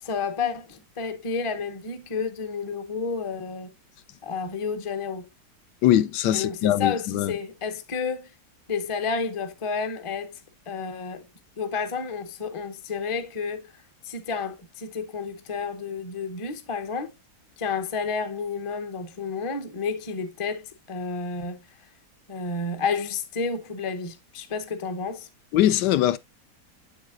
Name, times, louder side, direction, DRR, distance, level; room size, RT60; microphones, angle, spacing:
voice 1, 0.0-3.7 4.2-5.3 6.3-8.3 8.7-10.4 10.7-11.3 11.6-13.7 14.0-17.1 17.6-21.7 22.3-25.3, left 5 dB, 35° left, 0.5 m, -31 dB
voice 2, 5.8-7.3 25.5-26.2, left 12 dB, 90° left, 1.2 m, -21 dB
7.2 x 7.2 x 2.4 m
omnidirectional pair, 1.8 m